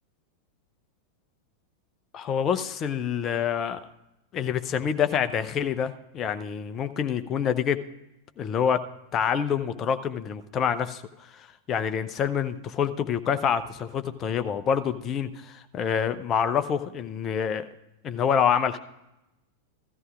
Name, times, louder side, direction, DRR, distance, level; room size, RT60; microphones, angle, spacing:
voice 1, 2.1-3.8 4.3-7.8 8.4-8.8 9.1-11.0 11.3-17.7 18.0-18.8, left 8 dB, 30° left, 10 dB, 0.7 m, -27 dB
16.0 x 13.5 x 2.5 m, 0.91 s
figure-of-eight pair, 90°, 0 cm